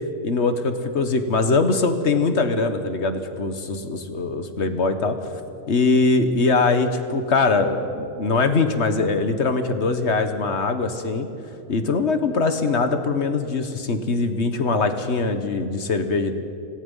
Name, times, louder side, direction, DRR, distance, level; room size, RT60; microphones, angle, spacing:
voice 1, 0.2-5.2 5.7-11.3 11.7-16.4, left 3 dB, 45° left, 8 dB, 1.5 m, -22 dB
26.5 x 18.0 x 5.6 m, 2.7 s
omnidirectional pair, 1.7 m